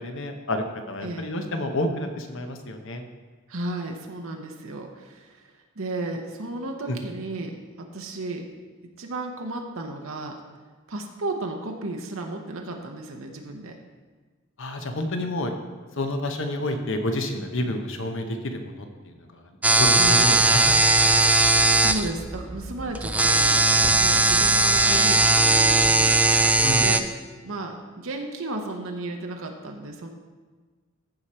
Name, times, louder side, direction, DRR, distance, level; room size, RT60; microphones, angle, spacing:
voice 1, 0.0-3.0 6.9-7.0 14.6-15.5 16.0-19.4 19.7-21.4 26.6-27.0, left 1 dB, 65° left, 6 dB, 1.0 m, -29 dB
voice 2, 3.5-5.4 5.8-8.5 9.0-10.4 10.9-13.8 19.9-20.2 21.7-23.6 24.0-26.5 26.8-27.0 27.4-30.1, right 2 dB, 70° right, 3 dB, 0.9 m, -34 dB
sound 1, 19.6-27.0, right 2 dB, 5° right, 0.3 m, -19 dB
14.5 x 4.9 x 4.3 m, 1.4 s
head